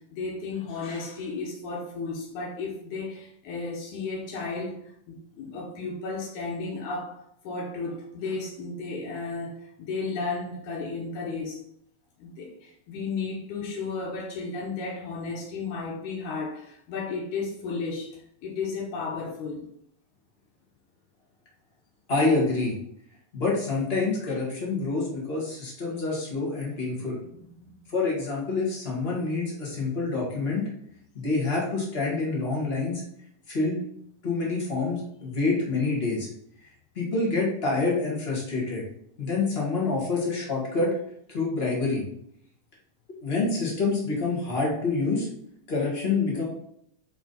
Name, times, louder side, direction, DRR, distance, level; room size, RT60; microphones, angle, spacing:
voice 1, 0.1-4.8 5.1-11.6 12.2-19.6 24.2-24.4 27.3-27.7, left 4 dB, 85° left, -3 dB, 2.6 m, -34 dB
voice 2, 22.1-22.8 23.3-27.2 27.9-30.6 31.1-33.0 33.5-33.8 34.2-36.3 36.9-38.8 39.2-40.9 41.3-42.0 43.2-45.3 45.7-46.4, left 3 dB, 25° left, -3 dB, 1.5 m, -27 dB
5.6 x 4.8 x 3.9 m, 0.71 s
omnidirectional pair, 3.4 m